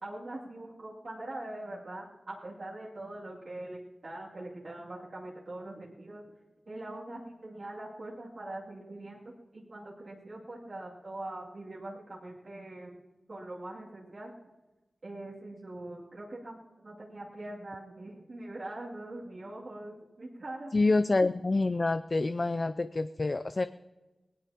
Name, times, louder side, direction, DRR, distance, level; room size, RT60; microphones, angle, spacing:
voice 1, 0.0-6.2 6.7-13.0 13.3-14.3 15.0-21.1, right 1 dB, 50° right, -5 dB, 2.5 m, -43 dB
voice 2, 20.7-23.7, left 3 dB, 35° left, 11 dB, 0.4 m, -27 dB
20.0 x 17.5 x 2.9 m, 1.1 s
wide cardioid pair, 110°, 0 cm